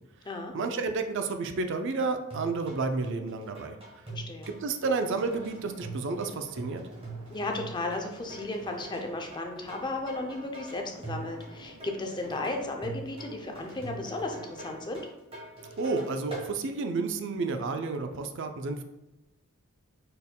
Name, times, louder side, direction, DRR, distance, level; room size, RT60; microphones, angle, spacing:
voice 1, 0.5-3.8 4.6-6.8 15.8-18.8, right 3 dB, 55° right, 7 dB, 0.4 m, -31 dB
sound 1, 2.3-16.5, right 2 dB, 25° right, 1.2 m, -43 dB
voice 2, 4.1-4.5 7.3-15.0, left 2 dB, 20° left, 3 dB, 0.5 m, -34 dB
sound 2, 5.0-15.0, right 1 dB, 80° right, 0.9 m, -52 dB
5.3 x 4.2 x 2.2 m, 0.96 s
head